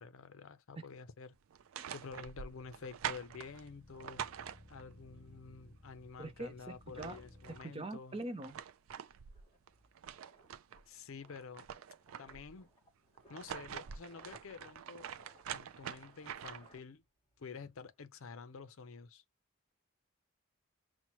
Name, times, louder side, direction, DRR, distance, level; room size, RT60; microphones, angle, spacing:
voice 1, 0.0-1.4 1.9-4.2 4.7-8.2 10.9-11.7 12.2-12.7 13.3-15.1 15.5-17.0 17.4-19.2, left 5 dB, 70° left, 0.5 m, -49 dB
sound 1, 1.5-5.0 6.5-6.6 6.8-7.7 8.2-10.8 11.2-12.6 13.2-16.8, right 9 dB, 70° right, 0.4 m, -45 dB
sound 2, 2.4-7.6, left 1 dB, 40° left, 2.6 m, -59 dB
voice 2, 6.2-6.5 6.9-7.2 7.6-8.6, right 2 dB, 25° right, 0.6 m, -42 dB
sound 3, 8.8-17.5 17.7-18.0, left 1 dB, 20° left, 1.5 m, -66 dB
5.8 x 2.1 x 3.0 m
head